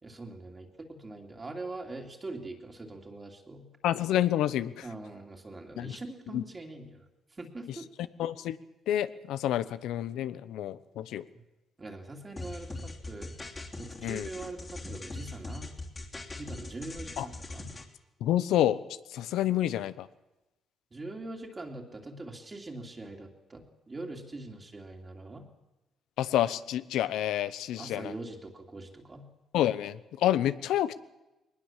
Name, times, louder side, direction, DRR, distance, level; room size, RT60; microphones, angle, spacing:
voice 1, 0.0-3.7 4.8-7.0 7.3-7.9 11.8-13.4 13.8-15.7 16.3-17.7 20.9-25.4 27.8-29.2, right 2 dB, 25° right, 2 dB, 2.9 m, -43 dB
voice 2, 3.8-4.9 5.8-6.0 6.3-6.4 8.2-8.6 8.9-11.2 14.0-14.3 17.2-17.3 18.2-18.8 19.1-20.1 26.2-28.1 29.5-30.9, left 12 dB, 85° left, 15 dB, 0.9 m, -28 dB
sound 1, 12.4-17.8, left 2 dB, 25° left, 3.1 m, -41 dB
21.0 x 20.0 x 7.4 m, 1.0 s
cardioid pair, 90°, 0 cm